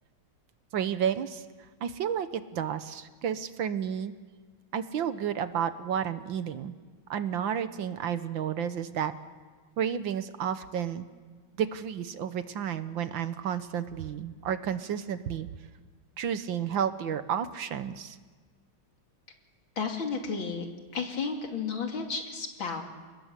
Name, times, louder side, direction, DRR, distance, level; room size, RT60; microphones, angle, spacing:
voice 1, 0.7-1.4 1.8-4.1 4.7-6.7 7.1-9.1 9.8-11.1 11.6-15.5 16.2-18.2, right 8 dB, 70° right, 11 dB, 1.7 m, -31 dB
voice 2, 19.8-20.7 20.9-22.8, left 5 dB, 70° left, 3 dB, 3.5 m, -32 dB
29.0 x 20.0 x 8.2 m, 1.4 s
omnidirectional pair, 2.3 m